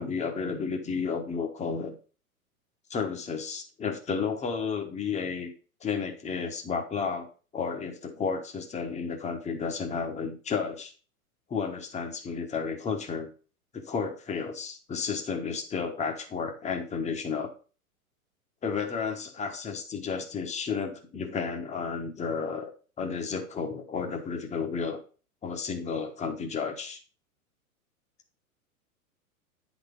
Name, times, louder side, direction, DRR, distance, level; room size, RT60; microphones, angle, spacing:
voice 1, 0.0-2.0 2.9-5.5 5.8-7.3 7.5-10.9 11.5-13.3 13.7-17.5 18.6-22.7 23.0-25.0 25.4-27.0, left 5 dB, 15° left, 4 dB, 1.3 m, -32 dB
9.9 x 4.2 x 5.3 m, 0.36 s
figure-of-eight pair, 100°, 44 cm